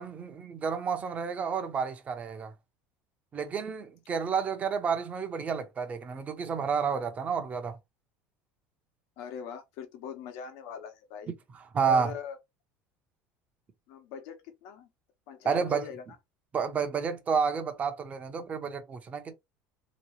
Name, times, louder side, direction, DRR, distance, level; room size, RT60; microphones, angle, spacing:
voice 1, 0.0-2.5 3.3-7.8 11.5-12.1 15.4-15.9 16.5-19.3, right 6 dB, 25° right, 0.8 m, -30 dB
voice 2, 9.2-11.3 11.8-12.4 13.9-14.9 15.3-16.0, left 7 dB, 75° left, 1.2 m, -41 dB
3.2 x 3.0 x 3.0 m
cardioid pair, 145°, 5 cm